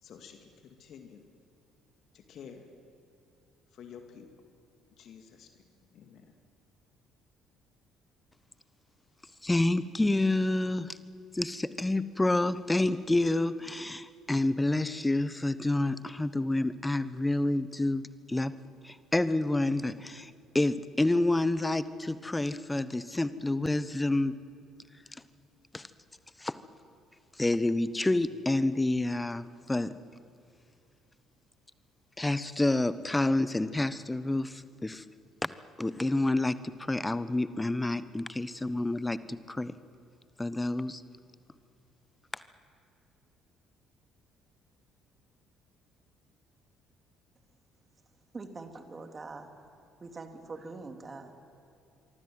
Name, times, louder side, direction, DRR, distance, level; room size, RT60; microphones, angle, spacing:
voice 1, 0.0-1.2 2.1-2.7 3.7-4.3 5.0-5.6 5.9-6.3, left 7 dB, 50° left, 6 dB, 2.2 m, -50 dB
voice 2, 9.4-11.0 11.3-18.0 18.3-18.5 18.8-24.3 25.7-25.9 26.4-26.6 27.4-29.9 32.2-35.0 35.4-35.5 35.8-39.2 39.5-39.7 40.4-41.0, left 2 dB, 15° left, 15 dB, 1.1 m, -28 dB
voice 3, 48.3-49.5 50.0-51.3, right 3 dB, 30° right, 5 dB, 3.0 m, -43 dB
25.0 x 24.5 x 7.9 m, 2.6 s
figure-of-eight pair, 50°, 0 cm